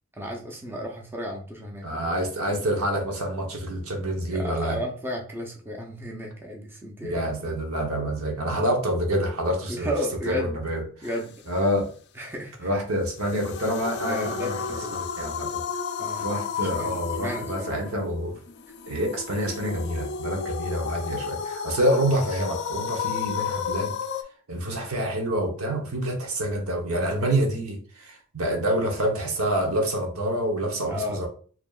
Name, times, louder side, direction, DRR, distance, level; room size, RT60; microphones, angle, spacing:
voice 1, 0.1-2.0 4.3-7.2 9.7-10.6 11.0-11.3 12.2-12.7 14.1-15.0 16.0-16.3 16.7-17.9 30.9-31.3, left 1 dB, 10° right, -1 dB, 0.7 m, -33 dB
voice 2, 1.8-4.8 7.0-9.9 10.2-11.1 11.5-11.9 12.6-14.6 14.9-15.6 16.2-18.3 18.9-23.9 24.5-31.3, right 1 dB, 75° right, 2 dB, 1.0 m, -27 dB
sound 1, 13.1-24.2, left 6 dB, 50° left, 0.4 m, -32 dB
4.9 x 2.8 x 2.4 m, 0.43 s
head